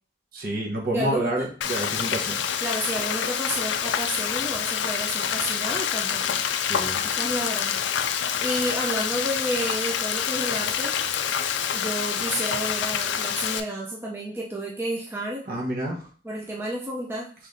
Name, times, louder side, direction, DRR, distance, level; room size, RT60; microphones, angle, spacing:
voice 1, 0.3-2.4 6.6-7.0 15.5-16.1, right 1 dB, 50° right, -1 dB, 1.1 m, -29 dB
voice 2, 0.9-1.5 2.0-2.1 2.6-6.4 7.1-7.8 8.4-11.0 11.7-15.4 16.2-17.3, right 1 dB, 10° right, -2 dB, 0.5 m, -31 dB
Frying (food), 1.6-13.6, left 8 dB, 70° left, 0.4 m, -27 dB
5.4 x 3.1 x 2.7 m, 0.43 s
head